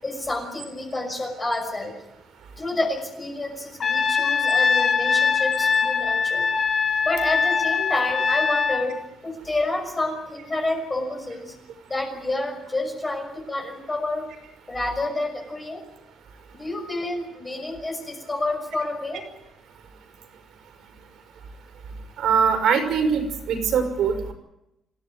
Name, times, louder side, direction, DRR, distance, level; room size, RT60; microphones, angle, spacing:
voice 1, 0.0-1.9 2.6-6.5 7.0-8.9 9.2-11.5 11.9-14.3 14.7-15.8 16.5-19.3, left 2 dB, 20° left, 2 dB, 6.0 m, -29 dB
Trumpet, 3.8-8.9, left 5 dB, 40° left, 2.6 m, -22 dB
voice 2, 22.2-24.3, right 6 dB, 70° right, 7 dB, 5.7 m, -22 dB
27.0 x 16.5 x 9.6 m, 0.87 s
cardioid pair, 150°, 0 cm